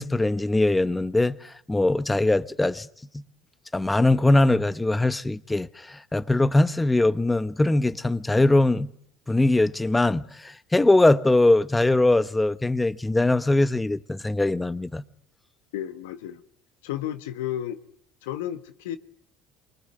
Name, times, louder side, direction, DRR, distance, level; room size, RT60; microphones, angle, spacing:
voice 1, 0.0-2.9 3.1-3.2 3.7-8.9 9.3-15.0, left 2 dB, 10° left, 1.0 m, -21 dB
voice 2, 15.7-16.4 16.8-17.8 18.2-19.0, left 11 dB, 85° left, 1.3 m, -32 dB
24.5 x 20.0 x 9.4 m
supercardioid pair, 80°, 0 cm